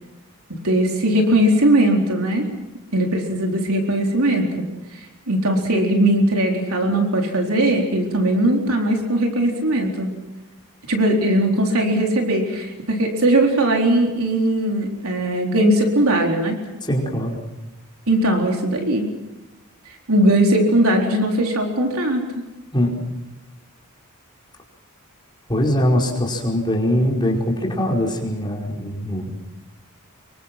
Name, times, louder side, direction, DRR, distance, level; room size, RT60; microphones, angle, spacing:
voice 1, 0.6-2.5 2.9-4.6 4.9-10.1 10.9-16.6 18.1-19.1 20.1-22.4, right 1 dB, 70° right, 2 dB, 4.1 m, -19 dB
voice 2, 16.8-17.4 22.7-22.9 25.5-29.3, equal, 20° left, -1 dB, 4.8 m, -22 dB
26.5 x 23.5 x 6.1 m, 1.1 s
head